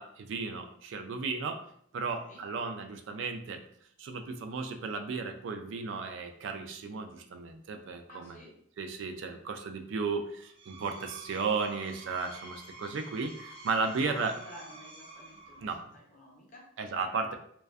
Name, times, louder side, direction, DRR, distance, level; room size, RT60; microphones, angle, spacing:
voice 1, 0.0-1.6 1.9-3.6 4.0-8.4 8.8-14.3 15.6-15.8 16.8-17.4, right 4 dB, 75° right, 6 dB, 0.3 m, -34 dB
voice 2, 2.1-2.4 8.1-8.5 9.2-9.4 13.9-16.8, left 1 dB, 40° left, -3 dB, 0.6 m, -50 dB
Screech, 10.4-15.9, right 2 dB, 30° right, 0.6 m, -49 dB
2.4 x 2.2 x 2.3 m, 0.67 s
head